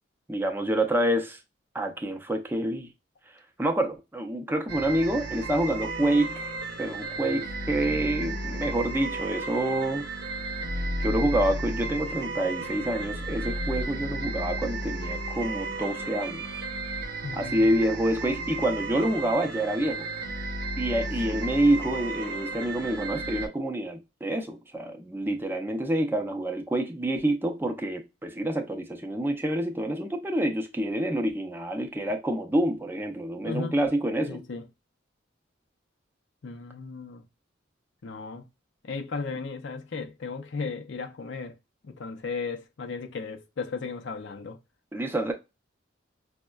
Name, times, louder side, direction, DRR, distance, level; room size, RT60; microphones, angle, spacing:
voice 1, 0.3-1.4 1.7-2.9 3.6-6.3 6.8-10.1 10.7-16.4 17.3-20.1 20.8-34.4 44.9-45.3, right 1 dB, 10° right, 0.5 m, -27 dB
sound 1, 4.7-23.5, right 2 dB, 60° right, 0.6 m, -33 dB
voice 2, 17.2-17.7 21.0-21.1 33.5-33.8 34.2-34.6 36.4-37.2 38.0-38.4 38.8-41.5 41.8-44.6, left 4 dB, 70° left, 0.5 m, -35 dB
5.2 x 2.1 x 2.2 m
head